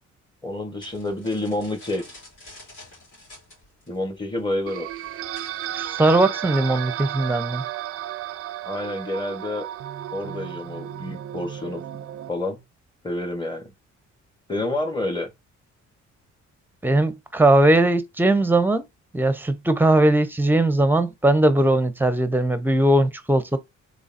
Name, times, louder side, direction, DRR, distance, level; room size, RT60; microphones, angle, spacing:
voice 1, 0.4-2.0 3.9-4.9 8.6-9.7 10.1-11.8 12.3-12.6 13.0-13.7 14.5-15.3, left 1 dB, 15° left, 1.2 m, -28 dB
sound 1, 0.8-5.9, left 1 dB, 80° left, 2.6 m, -48 dB
sound 2, 4.7-12.3, right 12 dB, 50° right, 0.4 m, -33 dB
voice 2, 5.7-7.6 16.8-18.8 19.1-23.6, right 1 dB, 5° right, 0.6 m, -19 dB
3.9 x 3.5 x 2.6 m
cardioid pair, 90°, 30 cm